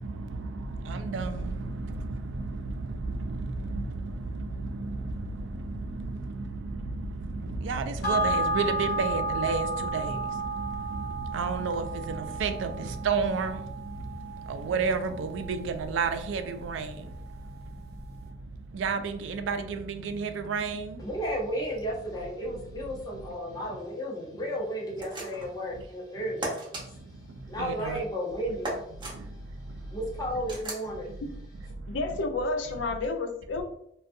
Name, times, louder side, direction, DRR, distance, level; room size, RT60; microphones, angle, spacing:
voice 1, 0.0-21.1 23.1-23.2 23.7-23.8 25.8-25.9 26.7-28.0 29.0-30.0 31.1-32.2, right 4 dB, 85° right, 0.3 m, -33 dB
sound 1, 8.0-16.8 17.1-17.2, right 1 dB, 55° left, 0.8 m, -33 dB
voice 2, 21.0-27.0 27.5-28.8 29.3-29.4 29.9-31.2, equal, 20° left, 0.6 m, -34 dB
sound 2, 25.0-25.6 26.4-26.8 28.6-29.2 30.5-30.9, right 2 dB, 25° right, 0.6 m, -35 dB
voice 3, 31.9-33.6, left 3 dB, 75° left, 0.4 m, -30 dB
2.6 x 2.3 x 2.5 m
head